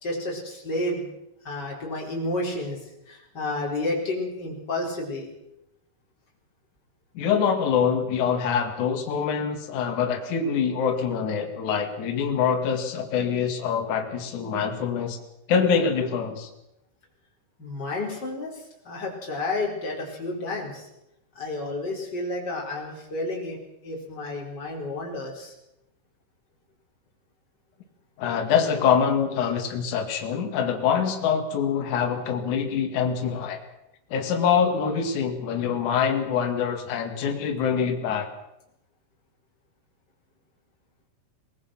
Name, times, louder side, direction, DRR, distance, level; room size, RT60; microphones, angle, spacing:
voice 1, 0.0-1.1 1.4-2.8 3.1-5.3 17.6-20.9 21.3-25.5, left 2 dB, 20° left, -1 dB, 5.0 m, -31 dB
voice 2, 7.1-15.2 15.5-16.5 28.2-33.6 34.1-38.3, left 7 dB, 50° left, 4 dB, 2.9 m, -25 dB
23.5 x 19.5 x 6.0 m, 0.84 s
omnidirectional pair, 5.6 m